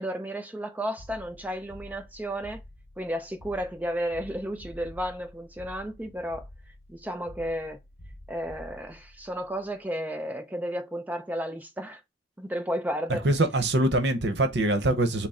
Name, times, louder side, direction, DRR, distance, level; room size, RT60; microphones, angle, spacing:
voice 1, 0.0-2.6 3.0-6.5 6.9-7.8 8.3-12.0 12.4-13.3, equal, 10° right, 0.4 m, -33 dB
sound 1, 1.0-10.1, equal, 25° left, 0.9 m, -49 dB
voice 2, 13.1-15.3, right 1 dB, 65° right, 0.9 m, -24 dB
6.0 x 2.0 x 4.2 m
head